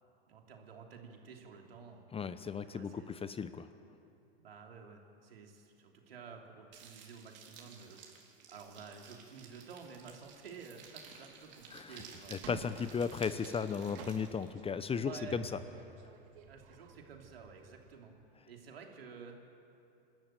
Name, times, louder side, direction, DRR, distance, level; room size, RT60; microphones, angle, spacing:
voice 1, 0.3-2.1 2.7-3.1 4.4-8.0 8.5-12.3 15.0-15.4 16.5-18.2 18.5-19.4, right 5 dB, 80° right, 2 dB, 3.1 m, -51 dB
voice 2, 2.1-3.7 11.7-12.0 12.3-15.5, left 6 dB, 20° left, 12 dB, 0.9 m, -36 dB
sound 1, 6.7-14.5, right 6 dB, 40° right, 4.1 m, -55 dB
sound 2, 10.0-10.4 10.9-11.0 11.5-11.8 12.2-17.9, right 7 dB, 60° right, 2.7 m, -52 dB
26.0 x 13.0 x 9.0 m, 2.7 s
hypercardioid pair, 95°, 29 cm